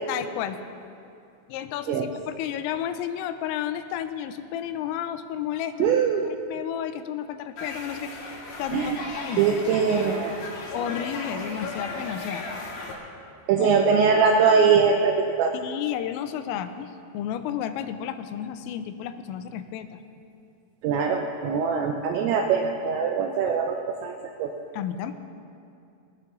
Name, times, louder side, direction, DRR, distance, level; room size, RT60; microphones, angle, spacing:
voice 1, 0.1-0.6 1.5-6.0 6.3-8.2 8.6-9.4 10.7-12.5 13.6-13.7 15.5-20.0 24.7-25.1, left 10 dB, 85° left, 10 dB, 3.2 m, -32 dB
voice 2, 5.8-6.3 8.7-9.0 9.4-10.4 13.5-15.6 20.8-24.5, right 6 dB, 85° right, 3 dB, 2.6 m, -22 dB
sound 1, 7.6-12.9, left 2 dB, 55° left, 3.3 m, -36 dB
20.5 x 7.9 x 6.0 m, 2.5 s
omnidirectional pair, 5.9 m